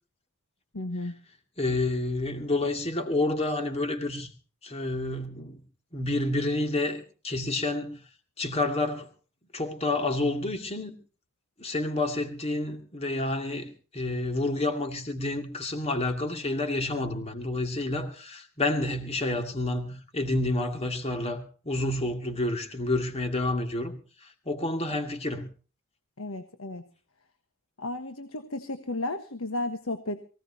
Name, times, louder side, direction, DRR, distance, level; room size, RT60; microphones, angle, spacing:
voice 1, 0.7-1.1 26.2-26.8 27.8-30.3, left 2 dB, 85° left, 1.4 m, -33 dB
voice 2, 1.6-4.3 4.6-5.6 5.9-8.0 8.4-9.1 9.5-11.0 11.6-23.9 24.2-25.5, left 2 dB, 30° left, 2.5 m, -29 dB
23.5 x 17.0 x 2.8 m
head